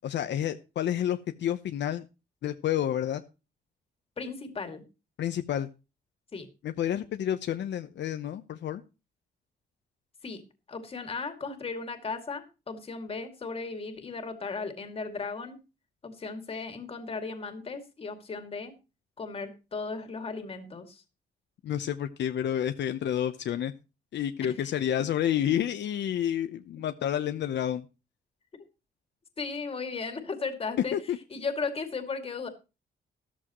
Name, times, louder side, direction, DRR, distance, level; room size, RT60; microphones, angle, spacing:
voice 1, 0.0-2.0 2.4-3.2 5.2-5.7 6.6-8.8 21.6-23.7 24.1-27.8 30.9-31.2, left 10 dB, 70° left, 8 dB, 0.9 m, -29 dB
voice 2, 4.2-4.8 6.3-6.5 10.2-10.4 10.7-15.6 16.0-18.7 19.2-21.0 24.6-24.7 29.4-30.9 31.3-32.5, left 4 dB, 30° left, 6 dB, 2.4 m, -36 dB
13.5 x 13.5 x 3.1 m, 0.30 s
wide cardioid pair, 165°, 19 cm